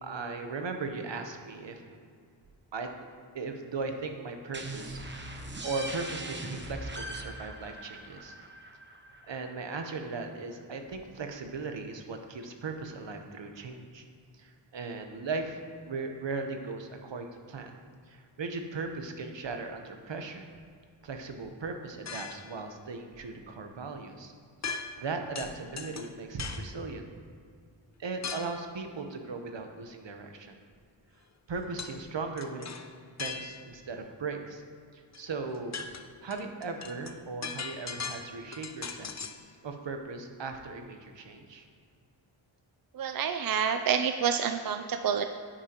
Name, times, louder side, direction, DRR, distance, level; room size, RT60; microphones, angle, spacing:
voice 1, 0.0-1.8 2.7-2.9 3.3-5.0 5.6-8.4 9.2-14.1 14.4-15.5 15.8-17.7 18.1-20.5 21.0-24.3 24.7-27.1 28.0-30.6 31.5-32.9 33.2-34.6 34.9-35.8 36.2-39.3 39.6-41.6, right 4 dB, 65° right, 5 dB, 1.0 m, -38 dB
sound 1, 4.5-10.0, right 1 dB, 25° right, 0.9 m, -41 dB
sound 2, 22.1-22.6 24.6-25.1 25.3-26.7 28.2-28.6 31.8-32.0 32.4-33.8 35.1-35.2 35.5-39.4, left 5 dB, 35° left, 0.5 m, -39 dB
voice 2, 42.9-45.3, right 7 dB, 50° right, 7 dB, 0.4 m, -28 dB
10.0 x 8.8 x 3.0 m, 2.2 s
wide cardioid pair, 75°, 48 cm